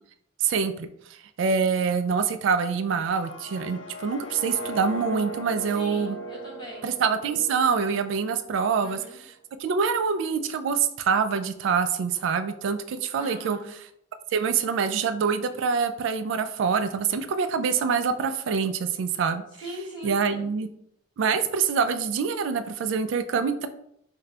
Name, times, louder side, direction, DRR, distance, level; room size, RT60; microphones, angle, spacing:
voice 1, 0.4-0.9 1.4-6.2 6.8-9.3 9.6-13.6 14.3-19.4 20.0-20.7 21.2-23.7, right 6 dB, 75° right, 10 dB, 0.3 m, -25 dB
sound 1, 3.0-8.9, right 1 dB, 90° left, 0.4 m, -38 dB
voice 2, 5.7-6.9 8.8-9.2 13.2-13.7 19.6-20.4, equal, 25° left, -6 dB, 1.4 m, -40 dB
3.3 x 2.2 x 3.7 m, 0.74 s
head